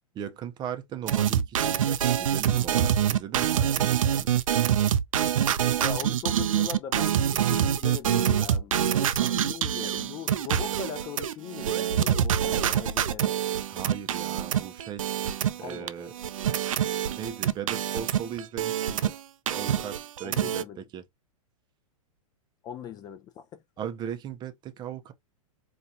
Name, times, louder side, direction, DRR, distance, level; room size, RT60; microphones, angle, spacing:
voice 1, 0.1-4.4 9.2-9.4 13.7-15.1 15.6-16.1 17.2-19.2 19.5-21.0 23.8-25.1, right 9 dB, 25° right, 0.6 m, -38 dB
sound 1, 1.1-19.2 19.5-20.6, right 10 dB, 70° right, 0.5 m, -25 dB
voice 2, 5.8-13.4 15.6-16.1 20.2-20.8 22.6-23.6, left 9 dB, 20° left, 0.4 m, -40 dB
4.5 x 2.4 x 2.7 m
figure-of-eight pair, 105°, 18 cm